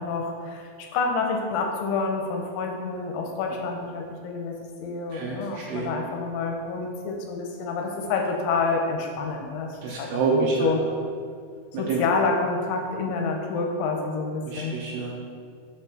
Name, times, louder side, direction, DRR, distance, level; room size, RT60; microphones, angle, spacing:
voice 1, 0.0-10.8 11.7-14.8, left 4 dB, 90° left, 2 dB, 3.1 m, -28 dB
voice 2, 5.1-5.9 9.8-10.7 11.9-12.0 14.5-15.1, right 4 dB, 75° right, -3 dB, 2.5 m, -27 dB
6.8 x 4.6 x 6.0 m, 2.1 s
omnidirectional pair, 5.4 m